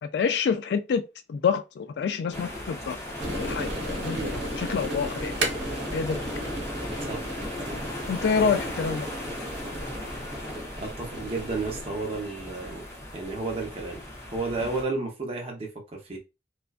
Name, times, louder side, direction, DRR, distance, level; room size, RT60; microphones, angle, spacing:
voice 1, 0.0-1.0 1.3-3.0 3.4-4.2 4.6-5.3 5.9-6.2 8.1-9.1, left 6 dB, 65° left, 0.3 m, -27 dB
sound 1, 2.3-14.8, left 1 dB, 15° left, 0.5 m, -37 dB
sound 2, 3.2-11.8, right 1 dB, 90° right, 1.1 m, -34 dB
voice 2, 10.8-12.8 13.1-14.0 14.3-16.2, right 3 dB, 30° right, 0.7 m, -32 dB
2.4 x 2.2 x 2.3 m
head